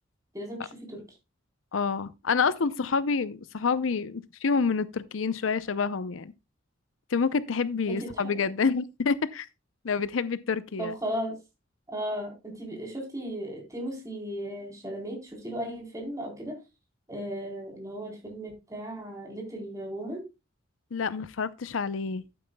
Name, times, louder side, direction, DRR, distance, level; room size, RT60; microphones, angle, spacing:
voice 1, 0.3-1.0 7.9-8.4 10.8-11.4 11.9-16.6 17.1-20.2, equal, 15° right, 3.7 m, -36 dB
voice 2, 1.7-6.3 7.1-9.5 9.8-10.9 20.9-22.2, left 5 dB, 90° left, 0.6 m, -28 dB
12.0 x 8.7 x 2.2 m
head